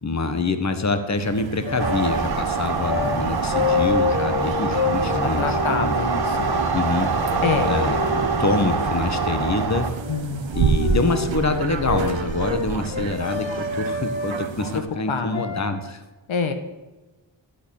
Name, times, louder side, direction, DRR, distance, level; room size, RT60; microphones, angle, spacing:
voice 1, 0.0-5.9 6.7-7.2 7.6-9.9 10.5-16.0, left 3 dB, 35° left, 9 dB, 1.5 m, -26 dB
sound 1, 1.1-14.8, right 6 dB, 75° right, 1.2 m, -31 dB
sound 2, 1.7-2.2 2.9-3.2 3.5-6.7 7.3-9.3 9.9-10.3 10.5-14.5 15.3-15.7, left 4 dB, 65° left, 1.9 m, -28 dB
sound 3, 1.8-9.9, right 4 dB, 55° right, 2.1 m, -24 dB
voice 2, 5.1-6.5 7.4-7.7 10.1-10.5 15.1-15.4 16.3-16.5, left 5 dB, 90° left, 8 dB, 1.5 m, -26 dB
12.5 x 8.8 x 6.6 m, 1.2 s
wide cardioid pair, 85°, 46 cm